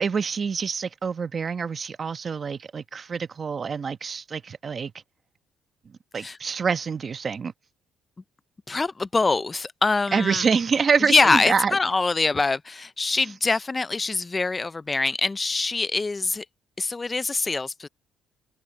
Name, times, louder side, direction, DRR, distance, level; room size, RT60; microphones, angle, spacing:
voice 1, 0.0-4.9 6.1-7.5 10.1-11.7, right 5 dB, 35° right, 1.2 m, -26 dB
voice 2, 8.7-10.5 11.1-16.4 16.8-17.9, left 3 dB, 20° left, 0.5 m, -24 dB
cardioid pair, 105°, 0 cm